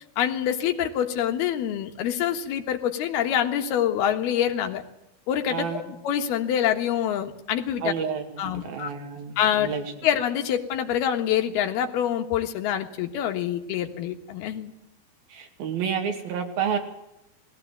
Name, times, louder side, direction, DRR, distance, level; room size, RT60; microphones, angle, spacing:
voice 1, 0.2-4.8 5.3-7.9 8.4-8.9 9.4-9.7 10.0-14.7, left 10 dB, 80° left, 6 dB, 3.4 m, -26 dB
voice 2, 5.5-5.9 7.8-9.9 15.3-16.8, right 7 dB, 70° right, 4 dB, 4.3 m, -30 dB
19.0 x 15.5 x 9.2 m, 0.87 s
omnidirectional pair, 4.4 m